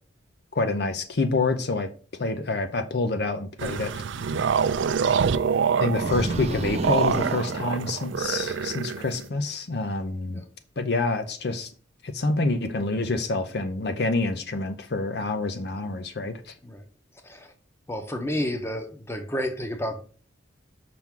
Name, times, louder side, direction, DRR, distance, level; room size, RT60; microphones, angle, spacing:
voice 1, 0.5-1.9 2.2-4.4 5.8-10.4 10.8-11.7 12.0-16.5, left 3 dB, 55° left, 0.6 m, -27 dB
sound 1, 3.6-9.3, right 6 dB, 75° right, 0.4 m, -26 dB
sound 2, 6.0-8.5, right 2 dB, 35° right, 0.6 m, -31 dB
voice 2, 17.9-20.0, equal, 15° left, 0.8 m, -30 dB
6.0 x 5.9 x 3.7 m
head